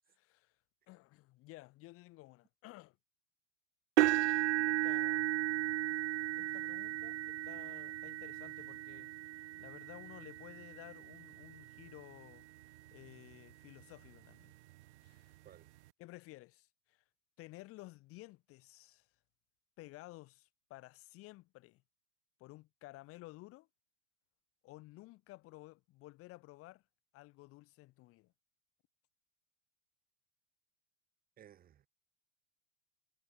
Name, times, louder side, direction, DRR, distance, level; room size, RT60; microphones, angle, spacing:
voice 1, 0.1-0.5 0.9-3.0 4.7-5.5 6.3-9.3 9.6-12.4 12.9-14.5 15.0-15.3 16.0-17.0 17.4-19.1 19.8-21.8 22.4-23.7 24.6-26.8 27.1-28.3, left 19 dB, 40° left, 6.1 m, -54 dB
sound 1, 4.0-12.0 12.6-12.9 13.3-13.4 14.8-14.9, right 16 dB, 75° right, 1.3 m, -35 dB
voice 2, 31.4-31.9, right 10 dB, 25° right, 4.6 m, -58 dB
supercardioid pair, 145°, 34 cm